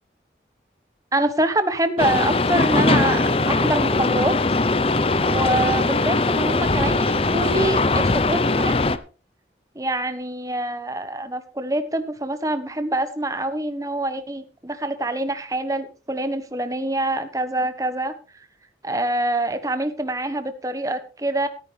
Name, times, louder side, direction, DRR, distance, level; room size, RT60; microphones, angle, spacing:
voice 1, 1.1-4.3 5.2-8.8 9.7-18.1 18.8-21.5, right 1 dB, 20° right, 10 dB, 1.2 m, -25 dB
sound 1, 2.0-9.0, left 3 dB, 35° left, 0.7 m, -20 dB
14.0 x 13.5 x 3.4 m, 0.36 s
head